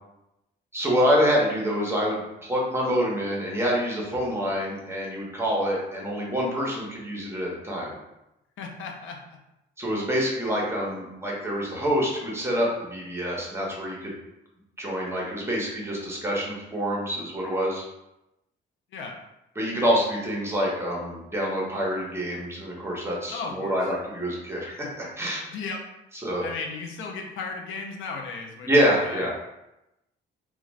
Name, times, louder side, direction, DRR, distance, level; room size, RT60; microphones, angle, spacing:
voice 1, 0.7-7.9 9.8-14.1 14.8-17.8 19.6-25.4 26.2-26.4 28.6-29.3, equal, 10° right, -3 dB, 0.9 m, -26 dB
voice 2, 8.6-9.4 18.9-19.1 23.3-23.8 25.5-25.8 26.4-28.7 29.0-29.3, left 4 dB, 75° left, 2 dB, 0.5 m, -35 dB
2.4 x 2.3 x 3.1 m, 0.91 s
cardioid pair, 90°, 20 cm